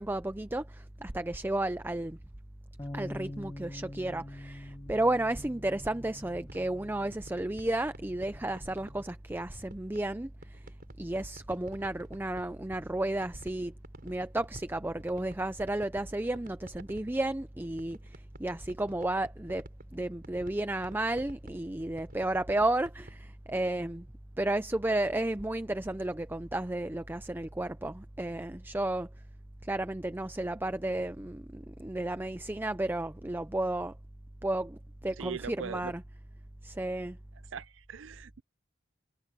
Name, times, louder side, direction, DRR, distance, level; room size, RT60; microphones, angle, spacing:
voice 1, 0.0-2.2 2.9-10.6 11.0-13.7 14.0-18.0 18.4-19.7 19.9-24.1 24.4-29.1 29.7-33.9 34.4-36.0 36.6-37.2, right 1 dB, 10° right, 0.6 m, -32 dB
sound 1, 2.8-9.0, left 1 dB, 20° left, 0.9 m, -46 dB
sound 2, 6.3-9.0 9.4-10.1 10.4-13.0 13.2-23.2, right 1 dB, 50° right, 5.4 m, -52 dB
voice 2, 35.2-35.9 37.5-38.4, right 7 dB, 80° right, 0.5 m, -40 dB
head